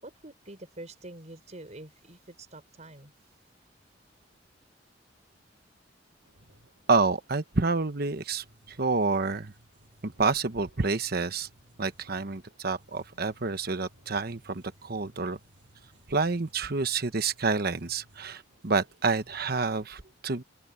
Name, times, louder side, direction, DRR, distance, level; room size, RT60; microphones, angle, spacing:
voice 1, 0.0-3.1, right 1 dB, 40° right, 6.2 m, -46 dB
sound 1, 6.2-19.5, right 1 dB, 75° right, 6.5 m, -60 dB
voice 2, 6.9-9.5 10.0-11.5 11.8-15.4 16.1-20.4, right 4 dB, 55° right, 1.1 m, -28 dB
open air
head